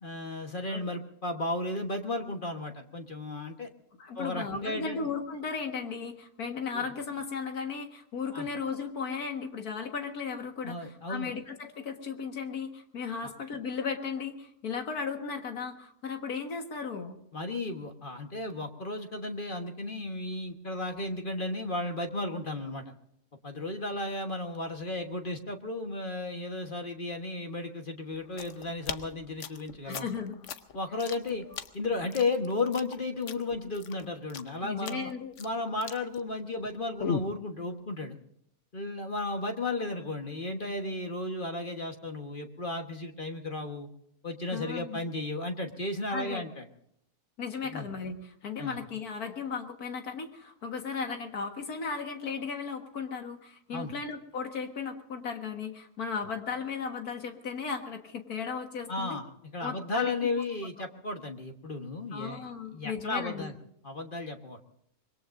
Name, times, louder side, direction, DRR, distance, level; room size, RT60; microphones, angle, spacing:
voice 1, 0.0-3.7 4.1-5.1 6.7-6.9 8.3-8.5 10.6-11.3 13.2-13.3 17.3-22.8 23.4-30.0 30.7-31.4 31.7-35.1 35.4-38.2 38.7-43.9 44.2-46.6 47.7-47.9 48.6-48.8 53.7-53.9 58.9-62.4 62.7-63.5 63.8-64.6, left 2 dB, 35° left, 4 dB, 1.4 m, -34 dB
voice 2, 4.0-17.2 29.8-30.3 31.5-31.6 34.6-35.3 44.5-45.0 46.1-46.4 47.4-59.2 59.6-60.1 62.1-63.5, left 5 dB, 75° left, 5 dB, 2.1 m, -36 dB
sound 1, 28.1-36.7 37.0-37.4, left 6 dB, 55° left, 1.0 m, -38 dB
25.0 x 21.5 x 2.6 m, 0.72 s
omnidirectional pair, 1.6 m